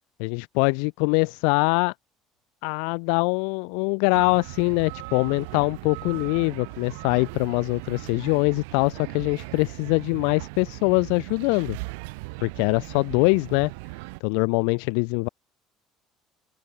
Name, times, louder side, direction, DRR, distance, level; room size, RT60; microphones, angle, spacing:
voice 1, 0.2-1.9 2.6-11.8 12.4-13.7 14.2-15.3, left 40 dB or more, 85° left, 0.8 m, -23 dB
sound 1, 4.1-14.2, right 30 dB, 90° right, 4.6 m, -38 dB
open air
supercardioid pair, 100°, 0 cm